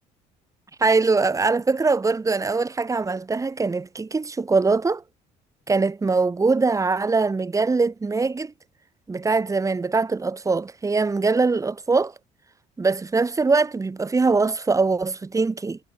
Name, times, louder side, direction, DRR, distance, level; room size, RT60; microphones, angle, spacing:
voice 1, 0.8-5.0 5.7-8.5 9.1-12.1 12.8-15.8, right 4 dB, 20° right, 1.4 m, -22 dB
cardioid pair, 110°, 17 cm